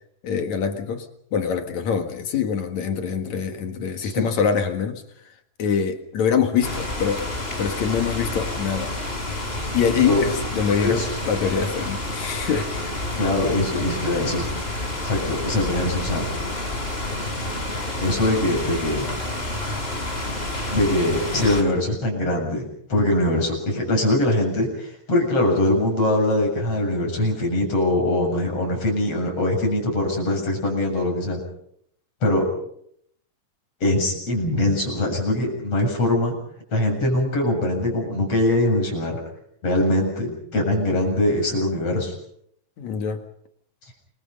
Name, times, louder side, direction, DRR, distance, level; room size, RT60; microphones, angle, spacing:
voice 1, 0.2-5.0 5.6-7.3 7.6-8.9 9.7-12.9 42.8-43.2, left 7 dB, 60° left, 6 dB, 2.9 m, -24 dB
sound 1, 6.6-21.6, left 2 dB, 15° left, 4.5 m, -29 dB
voice 2, 13.2-14.4 15.0-16.3 18.0-19.1 20.7-22.6 22.9-31.4 32.2-32.4 33.8-36.4 36.7-39.2 39.6-42.1, left 1 dB, 40° left, 2 dB, 8.3 m, -22 dB
29.0 x 23.0 x 5.5 m, 0.70 s
omnidirectional pair, 4.0 m